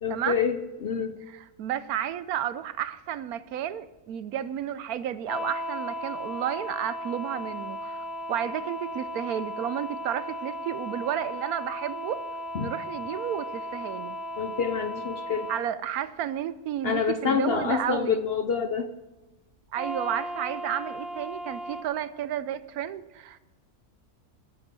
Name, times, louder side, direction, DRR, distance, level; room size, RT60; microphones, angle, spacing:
voice 1, 0.0-0.6 0.8-1.2 12.5-12.7 14.4-15.5 16.8-18.9, left 6 dB, 55° left, 9 dB, 0.7 m, -27 dB
voice 2, 1.3-12.2 12.6-14.1 15.5-18.2 19.7-23.4, right 10 dB, 75° right, 15 dB, 1.1 m, -32 dB
sound 1, 5.3-15.6 19.8-21.8, equal, ahead, 0.9 m, -36 dB
12.0 x 9.0 x 7.5 m, 1.1 s
omnidirectional pair, 1.6 m